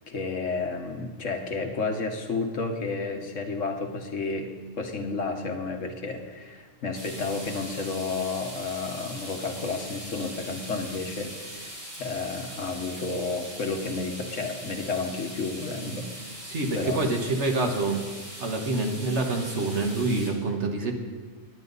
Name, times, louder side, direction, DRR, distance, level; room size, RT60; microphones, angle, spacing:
voice 1, 0.1-4.5 4.8-16.4 16.7-17.0, left 3 dB, 85° left, 4 dB, 1.6 m, -31 dB
sound 1, 7.0-20.3, equal, 85° right, 5.4 m, -41 dB
voice 2, 16.4-18.0 18.4-20.9, right 2 dB, 65° right, 3 dB, 1.8 m, -26 dB
18.5 x 10.5 x 4.1 m, 1.4 s
omnidirectional pair, 1.3 m